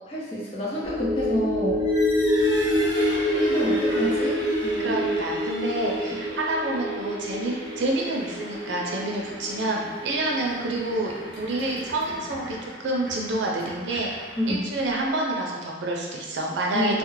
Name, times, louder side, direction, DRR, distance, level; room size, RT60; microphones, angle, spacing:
voice 1, 0.1-1.9 3.3-5.0 14.4-14.7 16.7-17.0, equal, 30° left, -7 dB, 0.6 m, -28 dB
sound 1, 0.8-11.5 11.8-11.9, left 1 dB, 15° left, 0.9 m, -27 dB
sound 2, 1.7-15.1, equal, 80° left, 0.9 m, -39 dB
voice 2, 2.8-3.6 4.8-14.1 14.5-17.0, right 2 dB, 90° right, -1 dB, 0.5 m, -28 dB
2.4 x 2.0 x 3.0 m, 1.4 s
head